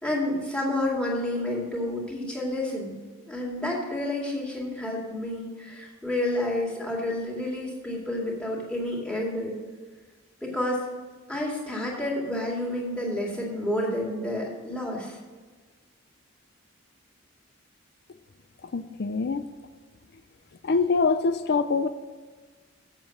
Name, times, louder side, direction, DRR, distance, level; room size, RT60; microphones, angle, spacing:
voice 1, 0.0-2.9 3.3-9.6 10.4-10.9 11.3-15.2, left 1 dB, 5° left, -3 dB, 2.2 m, -29 dB
voice 2, 18.6-19.5 20.6-21.9, left 4 dB, 50° left, 11 dB, 0.4 m, -24 dB
7.4 x 7.3 x 7.7 m, 1.4 s
head